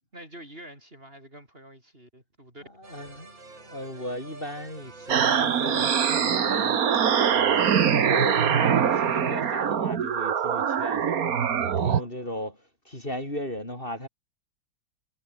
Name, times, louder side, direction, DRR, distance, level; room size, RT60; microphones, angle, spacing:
voice 1, 0.1-2.6 11.6-12.1, right 1 dB, 30° right, 6.7 m, -47 dB
voice 2, 2.8-6.8 7.3-11.2 11.6-12.6 12.9-14.1, left 1 dB, 25° left, 7.7 m, -36 dB
sound 1, 2.8-10.0, right 3 dB, 80° right, 5.9 m, -48 dB
sound 2, 5.1-12.0, right 8 dB, 55° right, 1.6 m, -23 dB
omnidirectional pair, 2.0 m